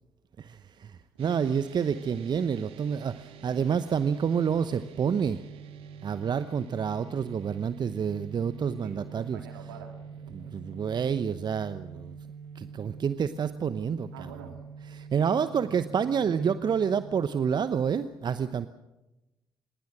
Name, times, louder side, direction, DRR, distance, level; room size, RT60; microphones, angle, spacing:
voice 1, 0.4-5.4 6.0-9.4 10.3-12.1 12.5-14.1 14.9-18.7, right 7 dB, 45° right, 13 dB, 0.9 m, -28 dB
sound 1, 1.2-17.1, right 6 dB, 60° right, 1.9 m, -45 dB
voice 2, 8.8-10.0 10.2-10.4 14.1-14.6 15.1-15.8 16.2-16.5, right 6 dB, 75° right, 4 dB, 3.3 m, -46 dB
26.0 x 21.0 x 6.3 m, 0.99 s
figure-of-eight pair, 40°, 11 cm